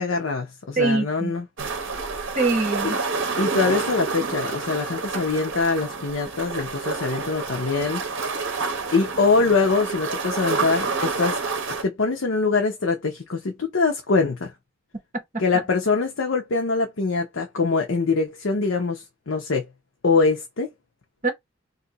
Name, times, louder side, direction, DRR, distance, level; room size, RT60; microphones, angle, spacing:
voice 1, 0.0-1.4 2.8-2.9 3.4-8.0 8.9-11.4 11.7-14.5 15.4-19.7 20.0-20.7, left 4 dB, 70° left, 0.7 m, -23 dB
voice 2, 0.8-1.3 2.3-3.0 15.1-15.4 21.2-21.3, right 3 dB, 35° right, 1.1 m, -23 dB
sound 1, 1.6-11.8, right 4 dB, 65° right, 0.9 m, -28 dB
2.7 x 2.6 x 3.8 m
head